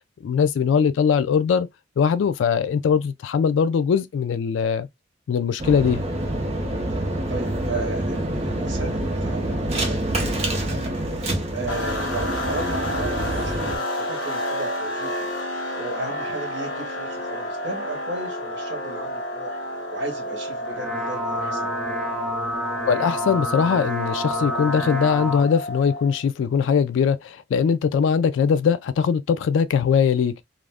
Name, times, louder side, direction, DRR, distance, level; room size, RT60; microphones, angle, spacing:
voice 1, 0.2-1.7 2.0-4.9 5.3-6.0 22.9-30.4, left 6 dB, 90° left, 0.3 m, -21 dB
sound 1, 5.6-13.8, right 1 dB, 35° right, 0.6 m, -26 dB
voice 2, 6.9-10.8 11.1-15.3 15.7-19.6 19.9-21.7, right 2 dB, 70° right, 0.8 m, -35 dB
sound 2, 11.7-26.2, equal, 75° left, 1.1 m, -31 dB
sound 3, 20.5-25.5, equal, ahead, 0.8 m, -29 dB
2.4 x 2.1 x 3.3 m
head